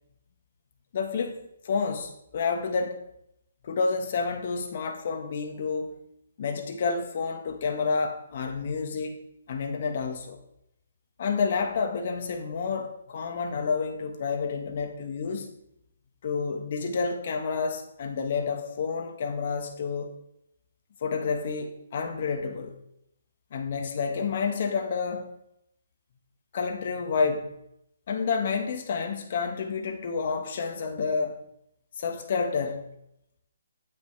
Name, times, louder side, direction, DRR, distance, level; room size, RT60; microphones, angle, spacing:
voice 1, 0.9-3.0 3.6-6.0 6.4-10.4 11.2-15.5 16.2-20.1 21.0-22.8 23.5-25.3 26.5-27.6 28.1-31.4 32.0-32.9, left 5 dB, 50° left, 4 dB, 1.5 m, -29 dB
10.0 x 9.2 x 3.4 m, 0.78 s
hypercardioid pair, 155°, 0 cm